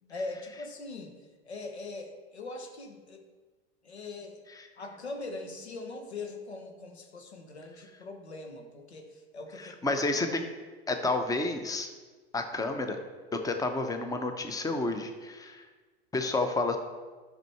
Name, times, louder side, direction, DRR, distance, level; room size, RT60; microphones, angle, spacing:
voice 1, 0.0-3.2 3.8-4.4 4.7-10.0, left 3 dB, 80° left, 3 dB, 1.7 m, -41 dB
voice 2, 9.6-10.4 10.9-11.9 12.3-13.0 13.4-15.6 16.1-16.8, left 2 dB, 10° left, 6 dB, 1.0 m, -30 dB
12.0 x 6.6 x 4.6 m, 1.4 s
figure-of-eight pair, 85°, 32 cm